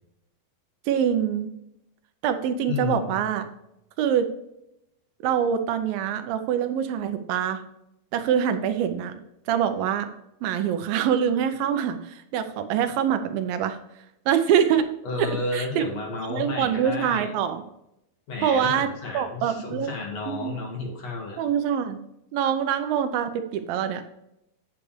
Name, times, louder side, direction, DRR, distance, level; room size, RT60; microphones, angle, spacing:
voice 1, 0.9-1.5 2.2-3.5 4.0-4.3 5.2-7.6 8.1-9.2 9.5-10.1 10.4-13.8 14.3-14.9 15.2-15.9 16.3-17.6 18.4-18.9 19.1-19.9 20.3-20.6 21.4-22.0 22.3-24.1, right 8 dB, 85° right, 8 dB, 2.5 m, -24 dB
voice 2, 2.7-3.2 15.0-17.3 18.3-21.4, left 3 dB, 50° left, 0 dB, 2.7 m, -32 dB
8.6 x 8.3 x 3.2 m, 0.83 s
omnidirectional pair, 4.2 m